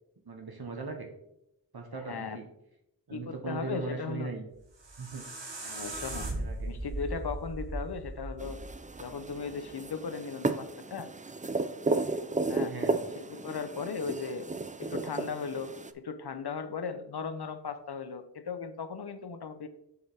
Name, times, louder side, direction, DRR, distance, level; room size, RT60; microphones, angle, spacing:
voice 1, 0.2-1.1 1.7-2.5 3.1-4.5 5.0-5.2 6.3-6.8 12.7-13.0, right 3 dB, 60° right, 3 dB, 1.0 m, -39 dB
voice 2, 2.1-2.4 3.1-4.3 5.6-6.3 6.7-8.6 9.0-11.1 12.5-12.7 13.2-14.5 14.8-19.7, left 5 dB, 65° left, 10 dB, 0.7 m, -37 dB
sound 1, 4.5-9.6, right 2 dB, 85° right, 1.5 m, -38 dB
sound 2, 8.4-15.9, right 3 dB, 20° right, 0.4 m, -34 dB
6.8 x 6.6 x 3.5 m, 0.82 s
wide cardioid pair, 55°, 42 cm